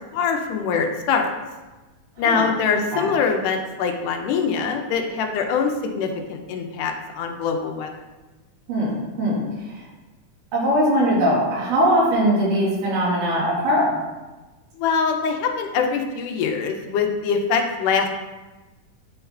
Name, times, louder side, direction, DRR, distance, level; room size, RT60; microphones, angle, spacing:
voice 1, 0.1-1.3 2.2-7.9 14.8-18.1, left 5 dB, 85° left, 4 dB, 2.1 m, -23 dB
voice 2, 2.7-3.1 8.7-9.8 10.5-14.0, equal, 80° right, -7 dB, 3.4 m, -21 dB
10.0 x 3.8 x 2.7 m, 1.2 s
omnidirectional pair, 3.7 m